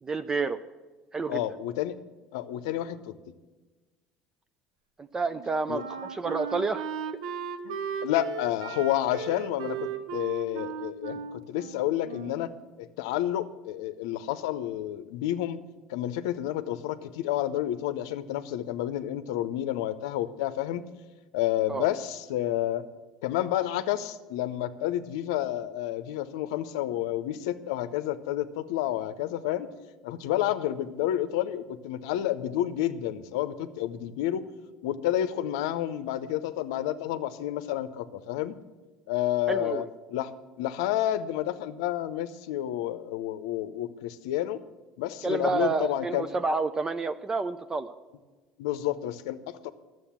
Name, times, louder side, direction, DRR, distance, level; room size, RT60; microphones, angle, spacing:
voice 1, 0.0-0.6 1.1-1.4 5.1-6.8 21.7-21.9 39.5-39.9 45.2-47.9, right 4 dB, 25° right, 10 dB, 0.5 m, -29 dB
voice 2, 1.3-2.0 2.3-3.1 5.7-5.8 7.6-12.5 12.8-15.6 15.9-20.8 21.3-22.8 23.2-29.7 30.0-34.4 34.8-38.6 39.1-40.3 40.6-44.6 45.0-46.3 48.6-49.7, left 12 dB, 85° left, 11 dB, 0.7 m, -30 dB
Wind instrument woodwind instrument, 5.3-12.6, right 6 dB, 90° right, 0.7 m, -37 dB
11.5 x 7.8 x 7.3 m, 1.3 s
supercardioid pair, 85°, 2 cm